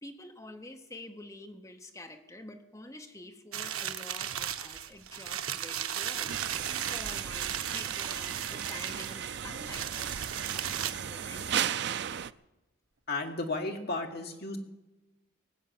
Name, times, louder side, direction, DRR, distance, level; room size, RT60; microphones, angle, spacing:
voice 1, 0.0-6.4 6.9-11.7, left 1 dB, 15° left, 5 dB, 0.9 m, -48 dB
sound 1, 3.5-10.9, right 9 dB, 90° right, 0.8 m, -36 dB
sound 2, 6.2-6.4 9.0-9.2 10.9-11.1 12.9-13.3, right 5 dB, 70° right, 1.1 m, -50 dB
sound 3, 6.3-12.3, right 9 dB, 55° right, 0.4 m, -36 dB
voice 2, 13.1-14.6, left 3 dB, 50° left, 3 dB, 1.8 m, -34 dB
19.0 x 7.9 x 7.7 m, 1.0 s
head